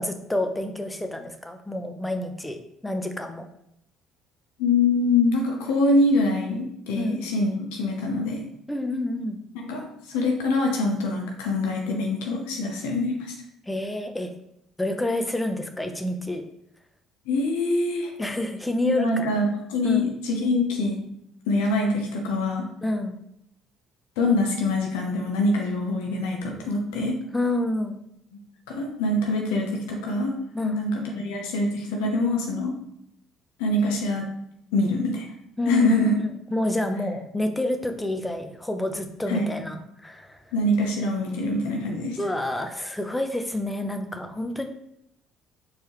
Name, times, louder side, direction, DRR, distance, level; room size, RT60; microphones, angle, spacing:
voice 1, 0.0-3.5 6.9-7.3 8.7-9.4 13.7-14.3 14.8-16.4 18.2-19.3 19.8-20.1 22.8-23.1 27.3-28.0 30.5-30.8 35.6-40.4 42.2-44.7, left 1 dB, 10° left, 6 dB, 0.7 m, -28 dB
voice 2, 4.6-8.4 9.6-13.3 17.3-18.1 18.8-21.0 21.5-22.7 24.2-27.2 28.7-30.3 30.6-32.7 33.6-34.3 34.7-35.3 35.7-36.1 39.3-39.4 40.5-42.2, left 2 dB, 80° left, 1 dB, 0.7 m, -24 dB
4.5 x 3.3 x 3.1 m, 0.77 s
hypercardioid pair, 60°, 0 cm